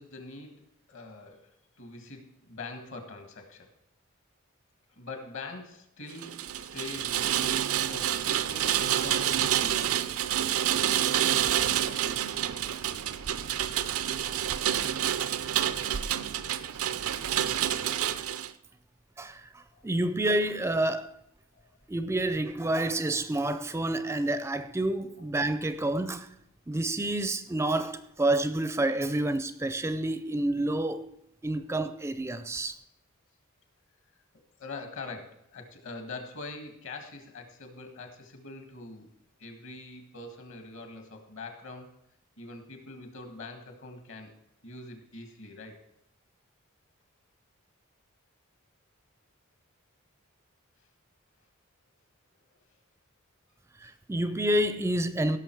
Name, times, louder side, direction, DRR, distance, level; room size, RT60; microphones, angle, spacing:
voice 1, 0.0-3.7 4.9-10.2 19.7-19.9 21.5-21.6 34.6-39.1 39.4-41.9 42.4-44.3 44.6-45.8 53.8-53.9, left 3 dB, 65° left, 1.8 m, -44 dB
Rain, 6.1-18.5, right 10 dB, 80° right, 0.5 m, -28 dB
voice 2, 19.2-19.5 19.8-21.1 21.9-26.3 26.7-31.0 31.4-32.7 53.8-55.4, right 1 dB, 10° right, 0.4 m, -28 dB
16.5 x 6.2 x 4.6 m
head